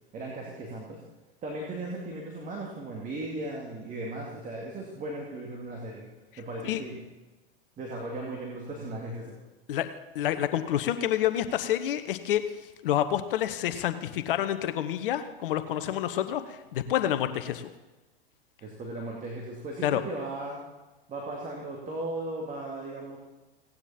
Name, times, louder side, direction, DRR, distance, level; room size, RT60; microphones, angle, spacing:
voice 1, 0.1-1.0 1.4-6.0 6.4-7.0 7.8-9.4 18.6-20.6 21.1-23.2, right 2 dB, 25° right, -2 dB, 2.5 m, -37 dB
voice 2, 10.1-12.4 12.8-17.6 19.8-20.0, left 11 dB, 60° left, 11 dB, 1.0 m, -28 dB
17.0 x 9.9 x 4.3 m, 1.1 s
hypercardioid pair, 100°, 30 cm